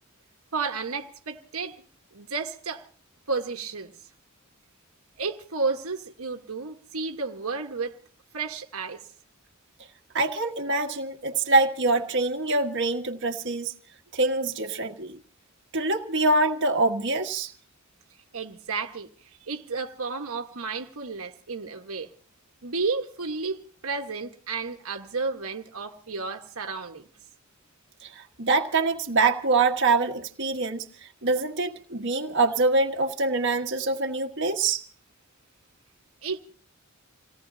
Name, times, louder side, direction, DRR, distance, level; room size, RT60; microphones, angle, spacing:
voice 1, 0.5-1.8 2.1-2.9 3.3-3.9 5.2-7.9 8.3-9.0 18.3-22.1 22.6-27.1 36.2-36.4, right 4 dB, 90° right, 1.4 m, -32 dB
voice 2, 10.1-13.7 14.1-15.2 15.7-17.5 28.0-30.9 31.2-34.8, right 3 dB, 60° right, 1.5 m, -24 dB
28.0 x 18.0 x 2.8 m
head